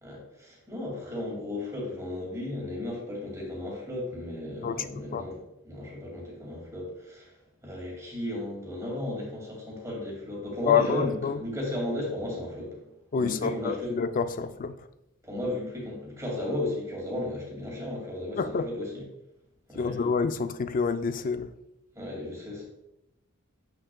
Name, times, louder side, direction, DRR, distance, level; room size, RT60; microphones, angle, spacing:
voice 1, 0.0-5.4 5.6-7.3 7.6-12.9 13.2-13.9 15.2-19.0 19.7-20.0 21.9-22.6, left 1 dB, 15° right, 2.1 m, -34 dB
voice 2, 10.7-11.4 13.1-14.9 18.4-18.7 19.7-21.5, left 6 dB, 40° left, 0.4 m, -27 dB
7.7 x 6.2 x 2.2 m
head